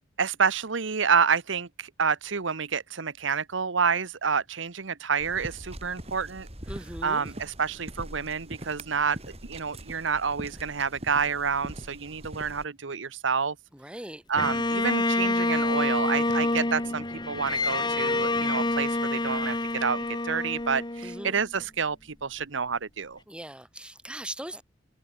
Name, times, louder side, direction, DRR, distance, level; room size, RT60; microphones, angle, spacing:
voice 1, 0.2-6.5 7.0-9.2 9.5-13.5 14.3-23.2, right 6 dB, 75° right, 1.0 m, -28 dB
sound 1, 5.2-12.6, right 1 dB, 35° right, 6.7 m, -42 dB
voice 2, 6.7-7.3 13.7-14.2 21.0-21.4 23.3-24.6, right 1 dB, 5° right, 6.1 m, -40 dB
Bowed string instrument, 14.4-21.6, left 2 dB, 25° left, 2.2 m, -27 dB
head